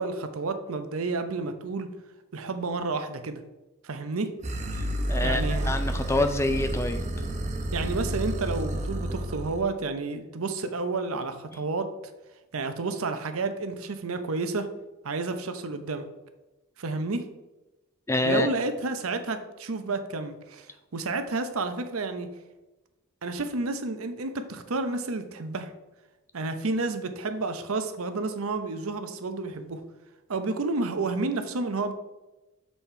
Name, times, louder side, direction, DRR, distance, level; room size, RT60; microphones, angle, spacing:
voice 1, 0.0-1.9 2.3-3.4 3.8-4.3 5.2-5.8 7.7-11.9 12.5-14.7 15.0-16.0 16.8-17.3 18.2-20.7 20.9-22.3 23.2-25.7 26.3-29.8 30.3-31.9, right 3 dB, 85° right, 9 dB, 0.8 m, -30 dB
sound 1, 4.4-9.6, right 1 dB, 35° right, 0.7 m, -30 dB
voice 2, 5.1-7.0 18.1-18.5, left 2 dB, 15° left, 8 dB, 0.4 m, -26 dB
7.4 x 4.2 x 4.4 m, 1.0 s
head